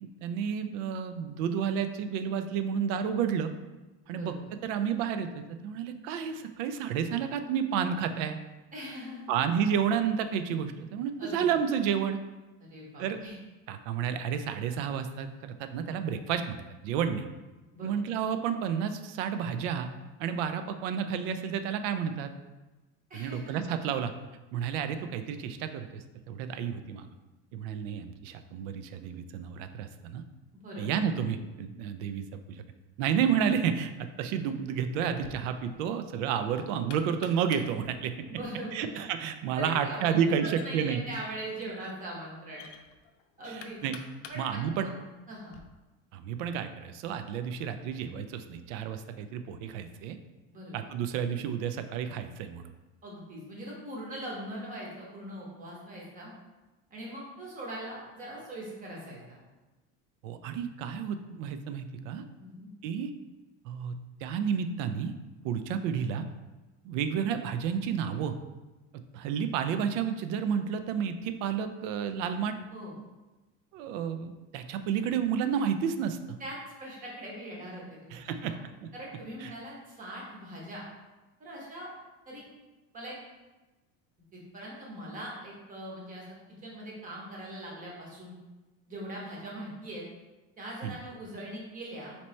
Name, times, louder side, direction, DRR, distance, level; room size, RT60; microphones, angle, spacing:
voice 1, 0.0-3.5 4.1-4.4 4.6-8.4 9.3-12.2 13.0-13.2 13.7-17.3 17.8-19.9 20.2-22.3 23.1-24.1 24.5-27.1 27.5-30.2 30.8-32.6 33.0-38.1 38.7-41.0 43.5-44.0 44.4-44.9 46.1-50.2 50.7-52.7 60.2-62.2 62.8-63.1 63.6-65.1 65.4-66.3 66.8-68.4 69.1-72.5 73.7-76.4 78.1-78.6 78.8-78.9 79.4-79.5 90.8-90.9, right 7 dB, 85° right, 9 dB, 0.5 m, -31 dB
voice 2, 4.1-4.4 8.7-9.3 11.2-11.6 12.6-13.3 17.7-18.0 23.1-23.6 30.6-30.9 38.3-38.9 39.5-42.7 43.4-43.8 44.3-44.9 45.3-45.6 50.5-50.8 53.0-56.3 56.9-59.4 62.4-62.7 72.7-73.0 76.4-78.6 78.9-80.9 81.4-81.9 82.3-82.4 82.9-83.2 84.3-86.2 86.6-88.3 88.9-90.0 90.6-92.2, right 1 dB, 20° right, -3 dB, 0.9 m, -41 dB
Knock, 35.0-45.6, left 6 dB, 85° left, 0.6 m, -52 dB
4.3 x 2.9 x 3.1 m, 1.1 s
cardioid pair, 170°, 36 cm